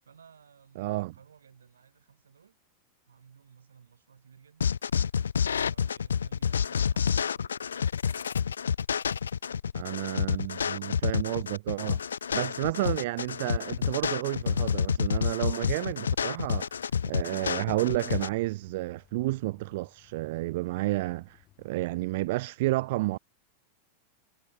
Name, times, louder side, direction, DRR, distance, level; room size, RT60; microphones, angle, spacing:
voice 1, 0.0-2.6 3.0-4.8 5.6-7.8 10.2-11.2, right 7 dB, 70° right, 6.3 m, -57 dB
voice 2, 0.8-1.1 9.7-12.0 12.3-16.7 17.0-23.2, right 19 dB, 50° right, 0.5 m, -31 dB
sound 1, 4.6-18.3, left 7 dB, 70° left, 0.4 m, -29 dB
sound 2, 14.7-22.3, left 16 dB, 35° left, 6.6 m, -63 dB
figure-of-eight pair, 90°, 0 cm